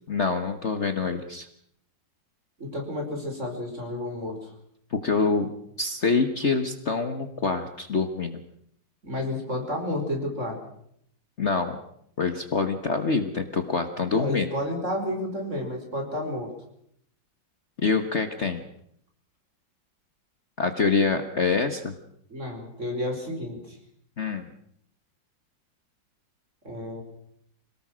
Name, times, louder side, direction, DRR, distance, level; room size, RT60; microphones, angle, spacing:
voice 1, 0.1-1.5 4.9-5.5 5.8-8.4 11.4-11.8 12.2-14.5 17.8-18.6 20.6-21.9 24.2-24.5, left 4 dB, 40° left, 8 dB, 1.5 m, -25 dB
voice 2, 2.6-4.4 9.0-10.6 14.1-16.5 22.3-23.8 26.6-27.0, left 1 dB, 40° right, 3 dB, 5.3 m, -31 dB
26.5 x 18.5 x 6.3 m, 0.71 s
omnidirectional pair, 2.0 m